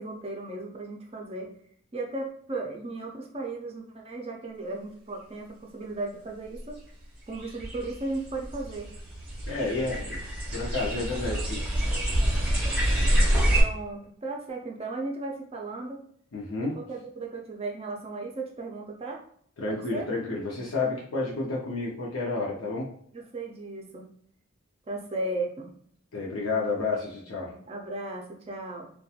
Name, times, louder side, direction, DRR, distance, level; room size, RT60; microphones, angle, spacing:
voice 1, 0.0-1.5 1.9-6.8 7.3-8.9 13.5-16.0 16.7-19.2 19.7-20.1 23.1-24.0 24.9-25.7 27.3-28.9, right 2 dB, 30° right, 1 dB, 0.4 m, -36 dB
sound 1, 6.6-6.7 7.3-13.6, right 1 dB, 5° right, 0.8 m, -27 dB
voice 2, 9.5-10.2 10.5-11.6 16.3-16.8 19.6-22.9 26.1-27.5, left 3 dB, 80° left, -3 dB, 0.6 m, -30 dB
2.8 x 2.2 x 2.3 m, 0.63 s
head